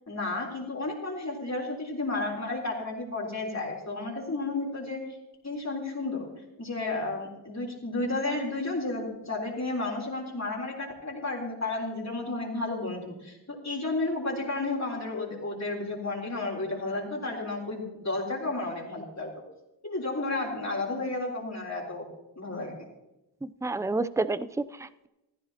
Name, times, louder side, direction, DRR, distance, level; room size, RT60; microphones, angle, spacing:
voice 1, 0.0-5.2 5.4-6.3 6.6-19.3 19.8-22.1 22.4-22.8, left 2 dB, 40° left, -2 dB, 3.7 m, -32 dB
voice 2, 23.4-25.1, right 3 dB, 5° right, 13 dB, 0.5 m, -30 dB
15.5 x 14.5 x 2.9 m, 0.95 s
wide cardioid pair, 60°, 42 cm